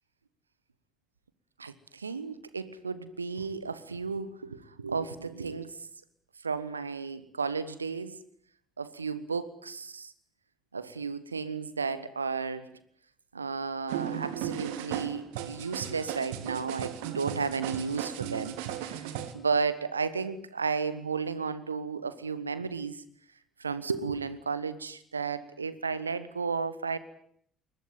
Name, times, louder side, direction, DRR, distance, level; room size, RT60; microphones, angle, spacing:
voice 1, 1.6-5.8 6.4-8.2 8.8-10.1 10.7-12.7 13.3-19.1 19.3-23.0 23.6-27.0, right 5 dB, 85° right, 15 dB, 1.2 m, -33 dB
sound 1, 13.9-19.3, right 10 dB, 70° right, 2.1 m, -36 dB
23.5 x 21.5 x 9.5 m, 0.64 s
figure-of-eight pair, 50°, 0 cm